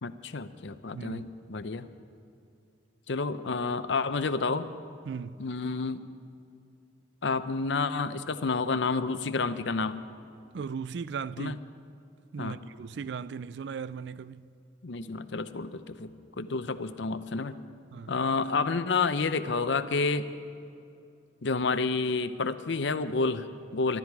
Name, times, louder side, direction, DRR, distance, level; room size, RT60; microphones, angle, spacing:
voice 1, 0.0-1.9 3.1-4.7 5.4-6.1 7.2-10.0 11.4-11.6 12.4-12.6 14.8-17.6 18.1-20.3 21.4-24.0, left 4 dB, 70° left, 0.7 m, -29 dB
voice 2, 0.9-1.2 5.1-5.4 10.5-11.6 12.3-14.5 17.9-18.1, right 6 dB, 65° right, 0.4 m, -37 dB
24.0 x 12.5 x 4.7 m
head